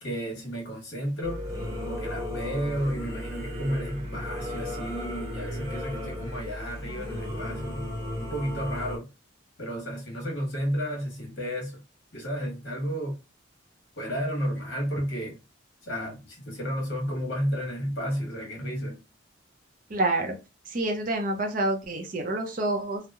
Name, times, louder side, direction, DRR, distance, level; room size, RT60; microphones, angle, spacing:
voice 1, 0.0-1.5 1.8-7.9 8.2-9.1 9.6-11.8 12.1-13.2 14.0-15.4 15.8-19.0, equal, 60° left, 1.1 m, -32 dB
Singing / Musical instrument, 1.2-9.0, left 1 dB, 20° right, 0.9 m, -35 dB
voice 2, 19.9-20.4 20.7-23.0, right 2 dB, 45° right, 0.5 m, -27 dB
2.8 x 2.0 x 2.2 m
head